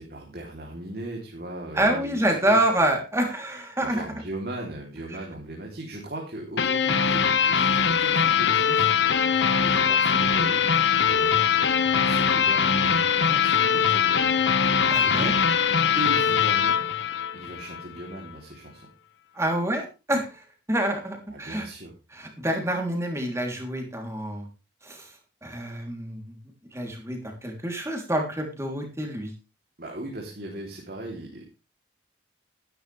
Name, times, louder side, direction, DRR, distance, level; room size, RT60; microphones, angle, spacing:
voice 1, 0.0-2.6 3.8-8.8 9.1-11.4 11.9-14.2 15.0-15.3 15.9-16.8 17.3-18.9 21.3-21.9 29.8-31.4, right 1 dB, 50° right, -1 dB, 3.4 m, -38 dB
voice 2, 1.7-4.0 14.9-15.3 19.3-21.7 22.1-24.5 24.8-25.2 25.4-26.4 26.7-29.3, right 1 dB, 15° right, 2 dB, 3.4 m, -27 dB
sound 1, 6.6-17.8, left 7 dB, 65° left, 1.3 m, -22 dB
13.5 x 12.5 x 3.5 m, 0.30 s
head